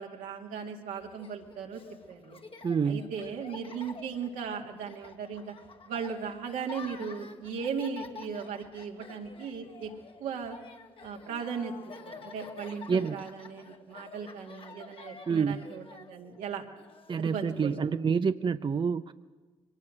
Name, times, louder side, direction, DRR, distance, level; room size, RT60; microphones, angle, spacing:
voice 1, 0.0-1.8 2.1-2.4 2.9-5.5 5.9-9.9 10.2-10.6 11.0-11.7 12.1-16.6 17.2-17.9, right 6 dB, 80° right, 1 dB, 2.2 m, -37 dB
Laughter, 1.0-17.8, left 4 dB, 40° left, 1.8 m, -49 dB
voice 2, 2.6-3.1 12.9-13.2 15.3-15.7 17.1-19.1, right 6 dB, 35° right, 11 dB, 0.6 m, -28 dB
23.0 x 18.5 x 6.5 m, 1.4 s
supercardioid pair, 50°, 13 cm